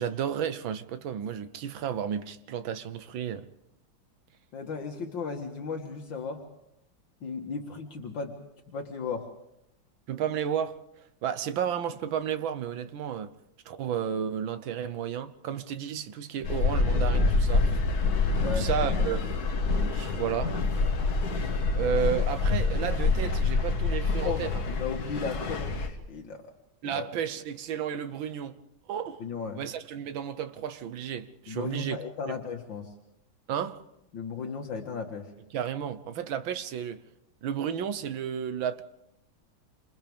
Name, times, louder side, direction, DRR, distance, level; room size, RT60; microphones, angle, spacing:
voice 1, 0.0-3.5 10.1-10.8 11.2-13.3 13.7-17.8 18.4-19.3 19.9-20.6 21.7-24.5 26.8-28.6 28.9-29.2 29.6-32.0 32.3-32.4 33.5-33.8 35.5-37.0 37.4-38.8, right 8 dB, 80° right, 1.7 m, -32 dB
voice 2, 4.5-6.4 7.2-8.3 8.7-9.3 18.4-18.7 24.2-26.4 26.8-27.1 29.2-29.6 31.5-32.9 34.1-35.3, left 5 dB, 70° left, 2.3 m, -35 dB
sound 1, 16.4-25.9, left 3 dB, 55° left, 1.8 m, -26 dB
28.5 x 27.0 x 3.6 m
omnidirectional pair, 2.1 m